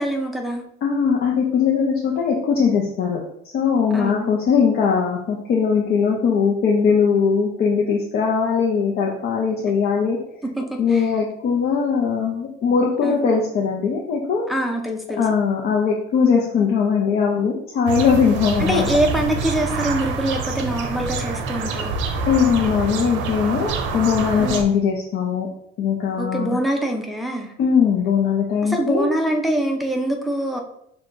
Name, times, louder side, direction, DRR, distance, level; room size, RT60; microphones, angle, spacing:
voice 1, 0.0-0.6 3.9-4.3 10.4-11.1 13.0-13.2 14.5-15.2 18.6-22.0 24.4-24.6 26.2-27.5 28.6-30.6, right 1 dB, ahead, 1 dB, 0.6 m, -24 dB
voice 2, 0.8-3.2 3.5-10.2 10.8-14.5 15.1-18.9 22.3-25.5 25.8-26.6 27.6-29.1, left 6 dB, 55° left, -2 dB, 0.7 m, -20 dB
sound 1, 17.9-24.6, right 4 dB, 80° right, 0.5 m, -26 dB
6.3 x 2.3 x 2.5 m, 0.73 s
cardioid pair, 125°, 19 cm